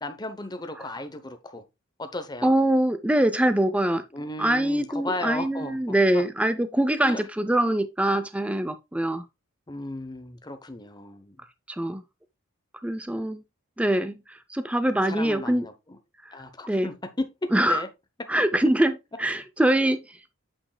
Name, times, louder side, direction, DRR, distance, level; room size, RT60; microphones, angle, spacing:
voice 1, 0.0-1.6 2.0-2.5 4.1-5.8 6.1-6.2 7.0-7.2 9.7-11.4 15.1-15.7 16.3-17.3 17.6-17.9, left 2 dB, 20° left, 0.8 m, -35 dB
voice 2, 2.4-4.0 4.4-9.2 11.7-12.0 12.8-13.4 13.8-14.2 14.5-15.7 16.7-16.9 17.5-17.8 18.3-20.0, right 1 dB, 5° right, 0.4 m, -23 dB
8.8 x 5.1 x 2.3 m
head